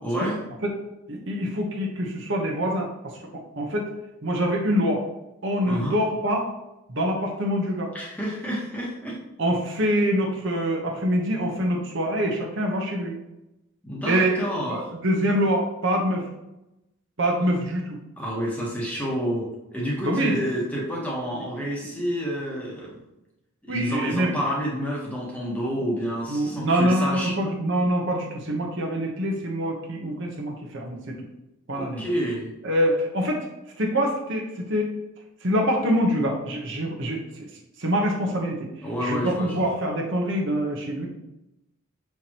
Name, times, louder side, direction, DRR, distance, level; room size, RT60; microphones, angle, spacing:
voice 1, 0.0-0.4 5.6-6.0 7.9-9.2 13.8-14.9 18.2-23.0 23.6-27.3 31.7-32.5 38.8-39.6, equal, 5° left, -4 dB, 1.2 m, -29 dB
voice 2, 1.1-3.9 4.2-5.0 5.4-6.5 6.9-7.9 9.4-13.1 14.0-14.4 14.7-16.3 17.2-18.0 20.0-20.4 21.8-21.9 23.7-24.3 26.3-31.2 31.7-32.0 32.6-33.5 33.8-34.9 35.4-37.5 37.8-38.7 39.0-41.1, equal, 55° right, 0 dB, 1.0 m, -25 dB
6.9 x 4.6 x 2.9 m, 0.93 s
head